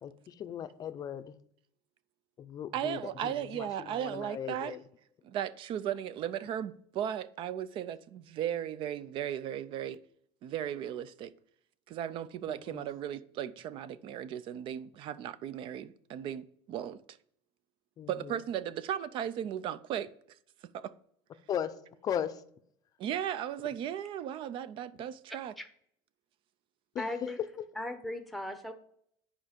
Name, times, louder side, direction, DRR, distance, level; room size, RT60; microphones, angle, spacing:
voice 1, 0.0-1.3 2.4-4.8 12.7-12.8 18.0-18.4 21.5-21.7 22.0-22.4 26.9-27.1, left 9 dB, 30° left, 0.6 m, -37 dB
voice 2, 2.7-4.8 5.2-10.0 10.4-11.3 11.9-17.2 18.1-20.1 20.7-20.9 23.0-25.5, right 10 dB, 45° right, 0.5 m, -36 dB
voice 3, 27.0-27.4 27.8-28.7, left 1 dB, ahead, 0.8 m, -37 dB
9.7 x 5.0 x 5.1 m
cardioid pair, 155°, 12 cm